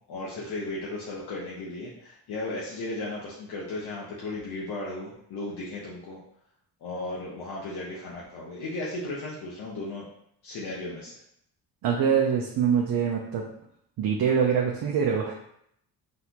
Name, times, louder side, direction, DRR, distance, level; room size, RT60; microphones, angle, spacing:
voice 1, 0.1-6.2 6.8-10.1 10.4-11.1, left 2 dB, 80° left, -5 dB, 1.0 m, -35 dB
voice 2, 11.8-13.4 14.0-15.3, right 7 dB, 65° right, -2 dB, 0.8 m, -24 dB
4.1 x 3.6 x 2.9 m, 0.71 s
cardioid pair, 75°, 39 cm